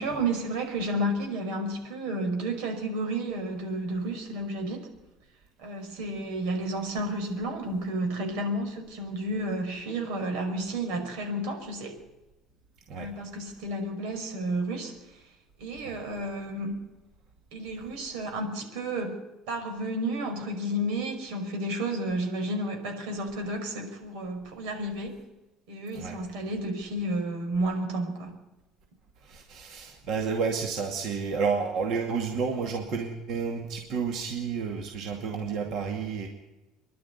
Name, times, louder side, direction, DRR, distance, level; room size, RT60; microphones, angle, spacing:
voice 1, 0.0-4.9 5.6-12.0 13.0-14.9 15.6-16.7 17.5-25.2 25.7-28.4, right 1 dB, 85° right, 4 dB, 5.6 m, -31 dB
voice 2, 29.2-36.3, right 5 dB, 50° right, 2 dB, 2.4 m, -31 dB
26.0 x 11.5 x 9.9 m, 1.0 s
cardioid pair, 170°, 0 cm